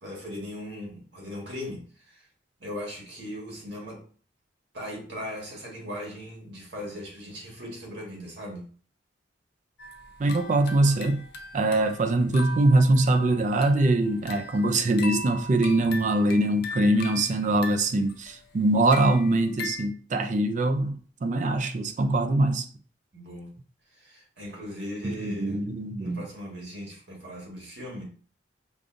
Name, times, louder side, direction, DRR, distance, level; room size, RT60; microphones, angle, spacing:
voice 1, 0.0-2.2 2.6-4.0 4.7-8.6 23.1-23.5 23.9-25.6 26.0-28.0, left 1 dB, 70° right, 1.6 m, -38 dB
sound 1, 9.8-19.9, left 2 dB, 60° left, 0.5 m, -40 dB
voice 2, 10.2-11.2 11.5-22.7 25.2-26.2, right 2 dB, 40° right, 0.4 m, -23 dB
5.2 x 2.3 x 2.5 m
head